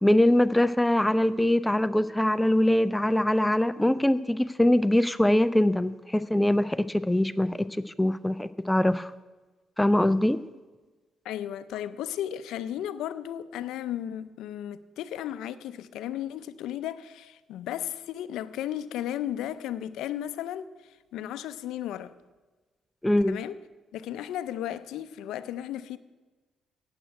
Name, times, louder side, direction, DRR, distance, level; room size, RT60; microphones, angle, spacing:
voice 1, 0.0-9.1 9.8-10.4 23.0-23.4, left 1 dB, 10° left, 0.4 m, -23 dB
voice 2, 11.2-20.7 21.1-22.1 23.3-23.6 23.9-26.0, left 11 dB, 85° left, 0.5 m, -34 dB
8.8 x 7.8 x 9.0 m
cardioid pair, 90°, 0 cm